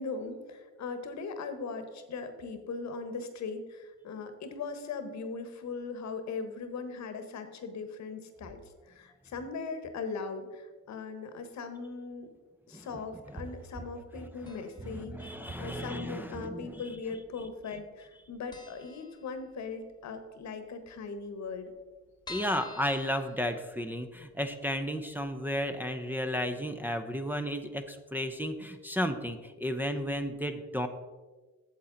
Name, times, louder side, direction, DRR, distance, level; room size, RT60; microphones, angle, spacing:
voice 1, 0.0-12.3 12.7-21.7, left 4 dB, 65° left, 9 dB, 1.1 m, -39 dB
sound 1, 14.5-15.0 15.2-15.3 16.3-17.0 17.3-17.4 17.7-17.8 18.2-18.3 18.5-19.8 20.2-20.3 20.6-20.7 20.9-21.0 21.5-24.1 24.5-24.6 25.0-25.1, left 3 dB, 15° left, 1.3 m, -49 dB
voice 2, 14.8-16.8 22.3-30.9, equal, 5° right, 4 dB, 0.6 m, -33 dB
8.4 x 7.2 x 3.9 m, 1.3 s
cardioid pair, 90°, 30 cm